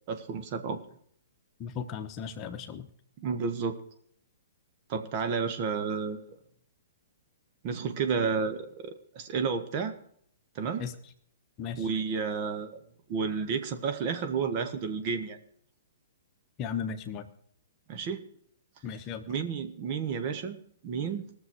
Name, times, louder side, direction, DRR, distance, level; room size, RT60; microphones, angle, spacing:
voice 1, 0.1-0.8 3.2-3.8 4.9-6.2 7.6-9.9 10.5-10.9 11.8-12.8 13.1-15.4 17.9-18.2 19.3-20.6 20.8-21.2, right 5 dB, 40° right, 7 dB, 1.4 m, -31 dB
voice 2, 1.6-2.9 10.8-10.9 11.6-11.9 16.6-17.3 18.8-19.3, left 7 dB, 30° left, 7 dB, 1.1 m, -36 dB
19.5 x 7.0 x 4.7 m, 0.64 s
hypercardioid pair, 125°, 0 cm